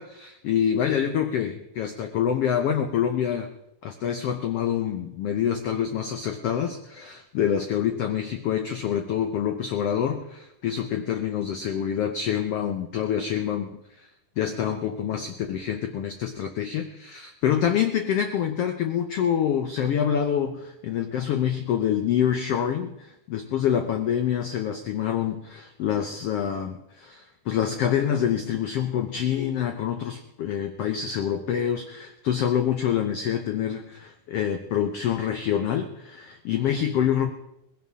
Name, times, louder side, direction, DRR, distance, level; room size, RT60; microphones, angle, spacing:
voice 1, 0.0-3.5 3.8-13.7 14.0-14.1 14.4-37.3, left 9 dB, 80° left, 7 dB, 1.3 m, -26 dB
20.0 x 16.5 x 3.7 m, 0.84 s
omnidirectional pair, 3.8 m